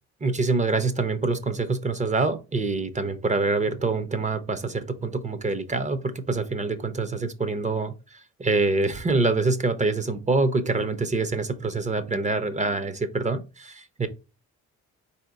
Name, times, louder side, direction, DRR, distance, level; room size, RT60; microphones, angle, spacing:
voice 1, 0.2-14.1, right 3 dB, 25° right, 10 dB, 0.8 m, -25 dB
4.3 x 2.8 x 3.9 m, 0.29 s
cardioid pair, 90°, 30 cm